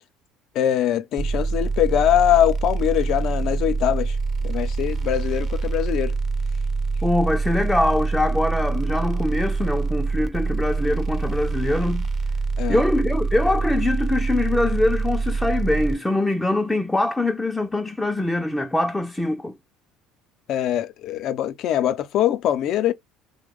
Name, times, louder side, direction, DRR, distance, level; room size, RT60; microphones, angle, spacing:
voice 1, 0.5-4.2 4.4-6.1 12.6-12.8 20.5-22.9, left 11 dB, 60° left, 0.5 m, -22 dB
sound 1, 1.2-15.9, right 4 dB, 40° right, 0.7 m, -25 dB
voice 2, 7.0-12.1 12.7-19.6, left 1 dB, 10° left, 0.5 m, -23 dB
3.0 x 2.1 x 3.5 m
supercardioid pair, 80°, 0 cm